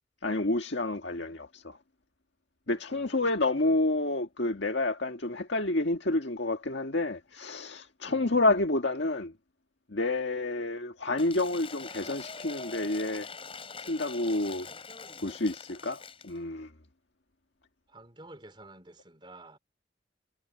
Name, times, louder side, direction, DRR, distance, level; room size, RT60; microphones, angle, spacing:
voice 1, 0.2-1.8 2.7-9.3 9.9-13.3 13.9-14.7 15.2-16.7, left 2 dB, 70° left, 1.7 m, -29 dB
voice 2, 2.7-3.3 8.0-8.3 17.9-19.6, right 2 dB, 25° right, 3.9 m, -51 dB
Cheering / Applause / Crowd, 11.1-16.4, left 4 dB, 30° left, 7.6 m, -44 dB
head